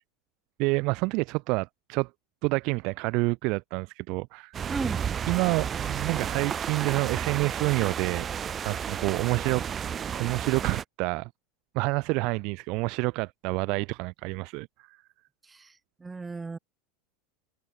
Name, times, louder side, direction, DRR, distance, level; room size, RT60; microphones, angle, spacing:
voice 1, 0.6-2.1 2.4-4.5 5.3-8.3 8.6-9.7 10.1-11.3 11.7-15.0, right 27 dB, 60° right, 1.4 m, -28 dB
sound 1, 4.5-10.8, right 8 dB, 30° right, 2.3 m, -32 dB
voice 2, 4.7-5.0 15.4-16.6, right 4 dB, 15° right, 6.4 m, -35 dB
open air
hypercardioid pair, 95°, 0 cm